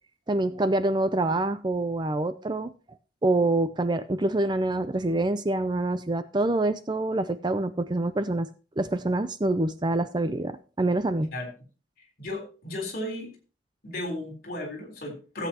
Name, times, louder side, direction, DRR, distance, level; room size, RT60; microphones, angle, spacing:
voice 1, 0.3-2.7 3.2-8.5 8.8-11.3, right 2 dB, 25° right, 12 dB, 0.5 m, -26 dB
voice 2, 12.2-13.3 13.8-15.5, left 1 dB, 55° left, 2 dB, 3.8 m, -34 dB
15.5 x 8.3 x 2.9 m, 0.34 s
head